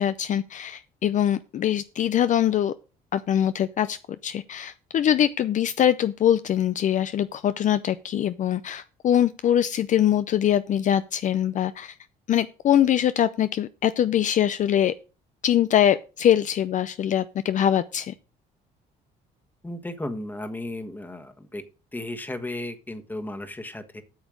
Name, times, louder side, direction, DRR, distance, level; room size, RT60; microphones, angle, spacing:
voice 1, 0.0-2.7 3.1-4.0 4.2-12.0 12.3-14.9 15.4-18.1, left 10 dB, 50° left, 13 dB, 0.5 m, -23 dB
voice 2, 19.6-21.6 21.9-24.0, left 1 dB, 10° left, 7 dB, 1.4 m, -34 dB
8.9 x 7.2 x 6.3 m, 0.34 s
cardioid pair, 110°, 17 cm